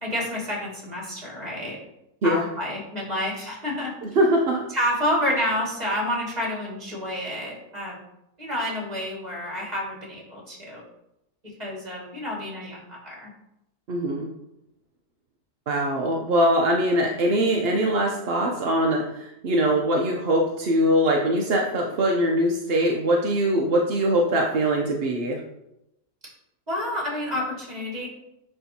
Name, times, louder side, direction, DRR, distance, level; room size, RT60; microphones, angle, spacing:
voice 1, 0.0-1.8 2.2-3.9 4.7-8.0 8.4-10.8 11.6-13.3 26.7-28.1, equal, 25° right, -4 dB, 2.0 m, -29 dB
voice 2, 4.2-4.6 13.9-14.3 15.7-25.4, right 1 dB, 60° right, 0 dB, 0.6 m, -22 dB
10.0 x 3.4 x 2.8 m, 0.84 s
omnidirectional pair, 1.7 m